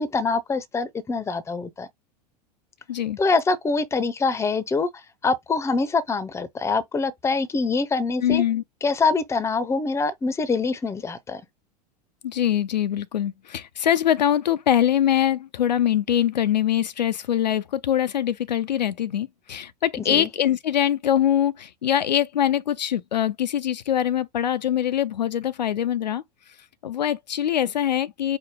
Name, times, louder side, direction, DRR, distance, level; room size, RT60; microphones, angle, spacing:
voice 1, 0.0-1.9 3.2-8.4 8.8-11.4 20.0-20.3, left 4 dB, 15° left, 0.6 m, -24 dB
voice 2, 8.2-8.6 12.2-26.2 26.8-28.4, left 10 dB, 80° left, 0.5 m, -23 dB
5.0 x 2.1 x 3.5 m
figure-of-eight pair, 90°, 21 cm